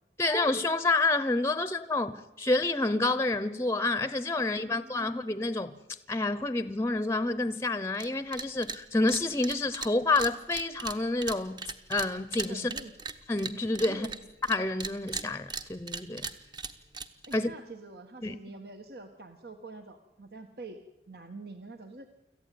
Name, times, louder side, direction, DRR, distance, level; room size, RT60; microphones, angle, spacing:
voice 1, 0.2-5.7 6.1-11.6 11.9-12.7 13.3-14.1 14.5-16.3 17.3-17.5 18.2-18.3, left 2 dB, 15° left, 0.8 m, -28 dB
voice 2, 4.3-5.3 12.5-12.9 13.9-14.2 17.3-20.8 21.1-22.1, right 2 dB, 60° right, 1.5 m, -45 dB
sound 1, 7.9-8.1 8.3-8.8 9.1-14.6 14.8-17.4, right 4 dB, 25° right, 1.1 m, -37 dB
26.0 x 14.5 x 9.4 m
head